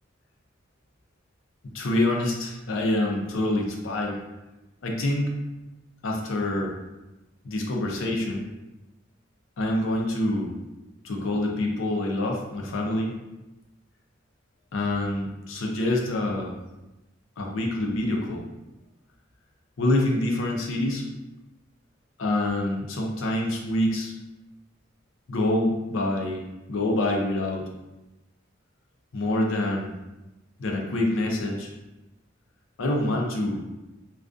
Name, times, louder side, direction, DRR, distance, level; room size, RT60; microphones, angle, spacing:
voice 1, 1.6-4.2 4.8-5.3 6.0-6.7 7.4-8.5 9.6-10.5 11.0-13.2 14.7-16.5 17.4-18.4 19.8-21.0 22.2-24.1 25.3-26.4 26.7-27.7 29.1-29.9 30.6-31.7 32.8-33.6, left 1 dB, 85° left, 0 dB, 0.5 m, -26 dB
2.4 x 2.3 x 2.4 m, 1.0 s
head